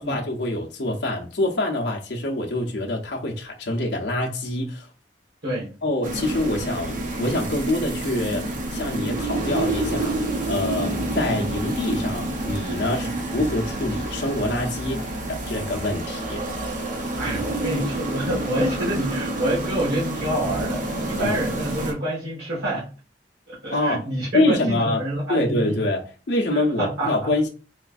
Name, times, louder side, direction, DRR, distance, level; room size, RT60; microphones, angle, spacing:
voice 1, 0.0-4.9 5.8-16.4 21.2-21.4 23.7-24.0 24.3-25.0 25.3-27.5, left 1 dB, 75° left, 0.7 m, -25 dB
voice 2, 5.4-5.7 12.9-13.2 17.2-22.9 23.5-25.8 26.5-27.3, right 1 dB, 80° right, 1.5 m, -27 dB
sound 1, 6.0-21.9, right 2 dB, 50° right, 0.8 m, -28 dB
4.3 x 2.3 x 2.5 m
head